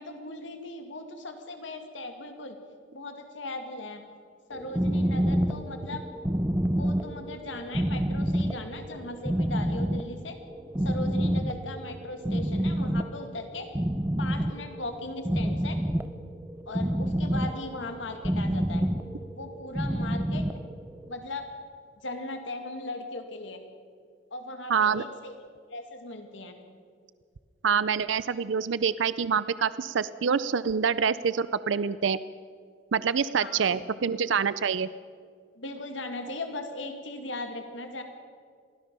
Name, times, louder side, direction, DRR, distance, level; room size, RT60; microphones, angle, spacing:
voice 1, 0.0-2.6 2.9-4.0 4.5-6.0 6.7-10.3 10.8-13.7 14.2-15.8 16.7-18.9 19.3-20.5 21.1-21.4 22.0-23.6 24.3-25.3 25.7-26.5 33.4-34.0 35.6-38.0, left 2 dB, 75° left, 6 dB, 2.2 m, -38 dB
sound 1, 4.5-21.2, equal, 10° right, 0.7 m, -28 dB
voice 2, 24.7-25.0 27.6-32.2 32.9-34.9, right 6 dB, 75° right, 16 dB, 0.5 m, -26 dB
23.0 x 16.5 x 6.8 m, 2.1 s
head